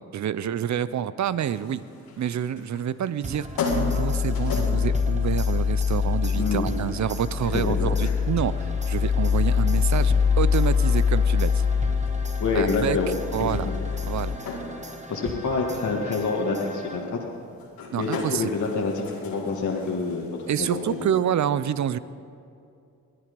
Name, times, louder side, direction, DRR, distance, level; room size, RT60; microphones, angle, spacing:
voice 1, 0.1-1.8 2.2-3.5 3.7-11.6 12.5-13.0 13.3-13.7 14.1-14.4 17.9-18.5 20.5-22.0, right 9 dB, 50° right, 16 dB, 0.7 m, -27 dB
sound 1, 1.4-21.1, left 3 dB, 75° left, 2.3 m, -39 dB
sound 2, 3.2-17.4, right 1 dB, 20° right, 1.4 m, -40 dB
sound 3, 3.7-14.4, left 6 dB, 35° left, 0.6 m, -24 dB
voice 2, 7.5-8.1 12.4-13.7 15.1-17.2 18.0-21.0, left 4 dB, 55° left, -1 dB, 1.9 m, -27 dB
21.0 x 10.0 x 5.3 m, 2.5 s
supercardioid pair, 55°, 35 cm